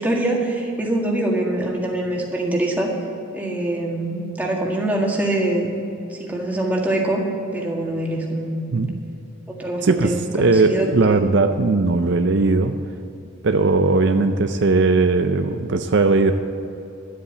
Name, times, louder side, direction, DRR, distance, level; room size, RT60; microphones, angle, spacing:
voice 1, 0.0-2.9 3.3-5.7 6.1-7.2 7.5-8.6 9.6-11.2, right 1 dB, 10° right, -2 dB, 1.8 m, -24 dB
voice 2, 9.8-12.8 13.4-16.3, right 3 dB, 55° right, 7 dB, 0.5 m, -18 dB
12.0 x 8.5 x 8.1 m, 2.8 s
head